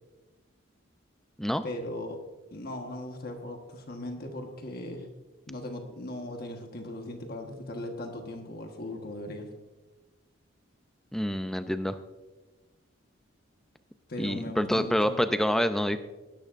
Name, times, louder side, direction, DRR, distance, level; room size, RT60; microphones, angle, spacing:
voice 1, 1.6-2.2 2.5-5.1 5.5-9.5 14.1-15.2, left 1 dB, 45° left, 3 dB, 1.3 m, -38 dB
voice 2, 11.1-12.0 14.2-16.0, equal, ahead, 10 dB, 0.4 m, -27 dB
18.0 x 12.0 x 2.6 m, 1.2 s
head